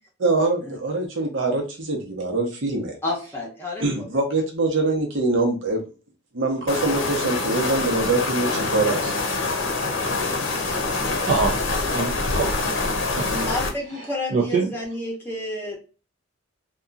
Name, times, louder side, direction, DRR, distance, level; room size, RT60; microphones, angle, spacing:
voice 1, 0.2-3.0 3.8-5.8 6.3-9.1, right 2 dB, 70° right, 1 dB, 0.8 m, -24 dB
voice 2, 3.0-4.1 13.1-15.8, left 1 dB, 10° left, -1 dB, 0.8 m, -30 dB
sound 1, 6.7-13.7, left 3 dB, 70° left, 0.7 m, -25 dB
voice 3, 11.3-11.6 11.9-12.7 13.0-13.4 13.9-14.7, right 4 dB, 45° right, -2 dB, 0.4 m, -25 dB
2.8 x 2.3 x 2.4 m, 0.34 s
head